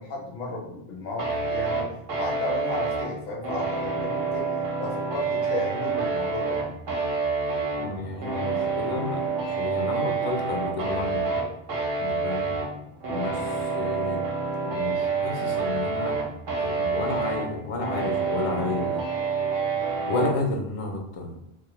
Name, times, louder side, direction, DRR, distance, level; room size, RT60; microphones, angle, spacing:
voice 1, 0.0-1.9 2.2-4.5 4.8-6.6, left 2 dB, 75° left, 1 dB, 0.8 m, -34 dB
sound 1, 1.2-20.4, right 4 dB, 60° right, 0.8 m, -28 dB
voice 2, 7.7-11.3 12.0-12.5 13.1-16.3 16.6-18.9 20.1-21.4, left 2 dB, 55° left, 1 dB, 0.4 m, -31 dB
2.3 x 2.0 x 2.9 m, 0.79 s
omnidirectional pair, 1.1 m